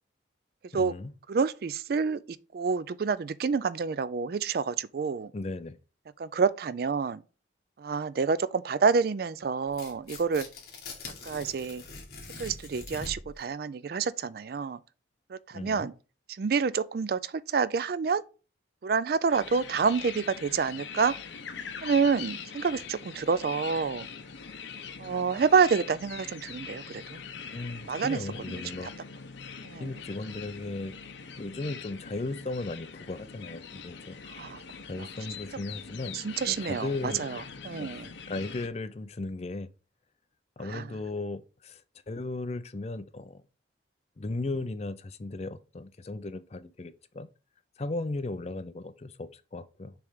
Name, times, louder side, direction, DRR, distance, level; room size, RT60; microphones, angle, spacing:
voice 1, 0.7-1.1 5.3-5.8 15.5-15.9 27.5-28.9 29.8-30.9 31.4-34.2 34.9-36.2 36.5-37.3 37.8-37.9 38.3-39.7 40.6-41.8 42.1-43.4 44.2-47.3 47.8-49.9, left 2 dB, 35° left, 0.4 m, -36 dB
voice 2, 1.3-5.3 6.2-7.2 7.8-10.5 11.2-11.8 12.4-14.8 15.3-15.9 16.3-18.2 18.8-21.1 21.8-24.1 25.0-27.2 27.9-28.2 28.5-28.6 29.6-29.9 34.3-34.6 36.1-38.1 40.6-40.9, right 5 dB, 50° right, 0.3 m, -28 dB
Tearing, 9.7-13.4, left 3 dB, 55° left, 1.9 m, -43 dB
sound 1, 19.3-38.7, left 6 dB, 70° left, 0.7 m, -43 dB
6.9 x 3.3 x 4.9 m
head